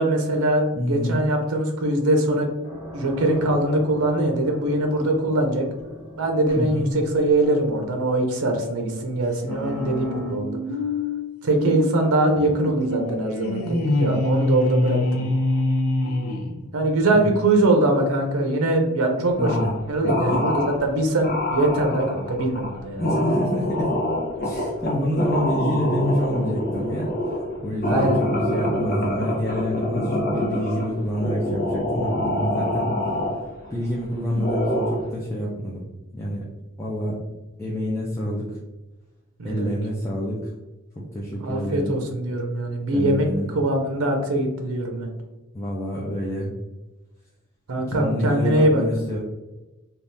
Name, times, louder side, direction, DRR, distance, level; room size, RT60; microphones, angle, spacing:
voice 1, 0.0-2.5 2.9-5.6 6.2-10.6 11.4-15.3 16.7-19.5 19.9-23.0 27.9-28.2 39.4-39.7 41.4-45.1 47.7-48.8, right 1 dB, 85° right, 3 dB, 0.6 m, -22 dB
voice 2, 0.7-1.2 6.6-6.9 17.1-17.3 19.4-19.7 20.1-20.4 23.0-23.9 24.4-27.1 27.6-32.9 33.7-35.8 36.1-36.4 36.8-37.2 37.6-38.5 39.4-40.5 40.9-42.0 42.9-43.5 45.5-46.5 47.9-49.2, equal, 15° left, -6 dB, 0.4 m, -27 dB
sound 1, 2.6-10.3, equal, 25° right, 1.0 m, -40 dB
sound 2, 9.4-17.0, left 2 dB, 90° left, 0.5 m, -25 dB
sound 3, 19.4-19.8 20.0-20.8 21.2-33.9 34.3-35.1, left 1 dB, 45° left, 0.8 m, -26 dB
3.4 x 2.4 x 2.6 m, 1.1 s
head